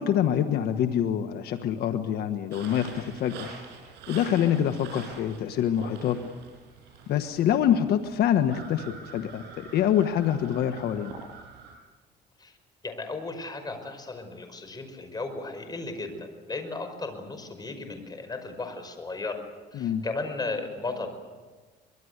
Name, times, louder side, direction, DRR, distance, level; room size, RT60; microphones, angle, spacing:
voice 1, 0.0-3.5 4.1-6.2 7.1-11.2 19.7-20.0, left 10 dB, 70° left, 8 dB, 1.4 m, -25 dB
sound 1, 2.5-11.8, right 5 dB, 85° right, 7.1 m, -45 dB
voice 2, 12.8-19.4 19.7-21.1, left 3 dB, 25° left, 7 dB, 5.3 m, -35 dB
25.0 x 22.5 x 8.2 m, 1.3 s
cardioid pair, 110°, 17 cm